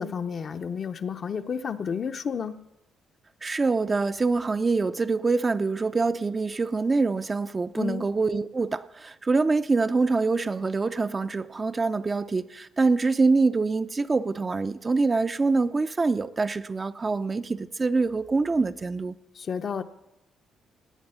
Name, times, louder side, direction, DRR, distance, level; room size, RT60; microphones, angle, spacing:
voice 1, 0.0-2.6 7.8-8.1 19.3-19.8, left 6 dB, 50° left, 0.7 m, -31 dB
voice 2, 3.4-19.2, right 3 dB, 30° right, 0.4 m, -25 dB
18.5 x 8.5 x 5.6 m
cardioid pair, 90°, 0 cm